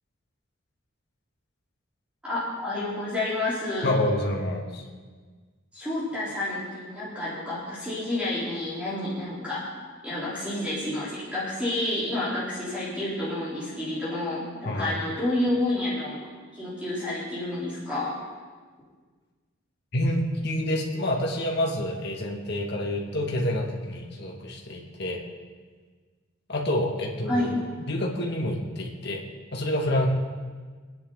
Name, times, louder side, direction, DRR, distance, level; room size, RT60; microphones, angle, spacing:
voice 1, 2.2-3.9 5.7-9.7 10.0-16.2 16.5-18.2 27.3-27.6, left 1 dB, 5° right, -10 dB, 3.9 m, -29 dB
voice 2, 3.8-4.8 14.7-15.0 19.9-25.2 26.5-27.5 27.7-29.2 29.5-30.1, left 1 dB, 55° left, 0 dB, 2.2 m, -28 dB
25.0 x 10.0 x 4.0 m, 1.5 s
head